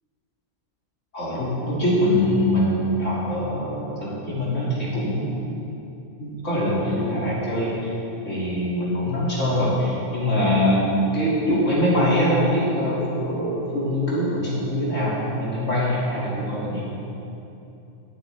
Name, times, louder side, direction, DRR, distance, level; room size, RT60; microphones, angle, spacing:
voice 1, 1.1-5.5 6.2-7.9 8.2-10.9 11.1-16.9, left 1 dB, 60° left, -7 dB, 2.7 m, -23 dB
18.5 x 7.5 x 3.3 m, 2.8 s
omnidirectional pair, 1.5 m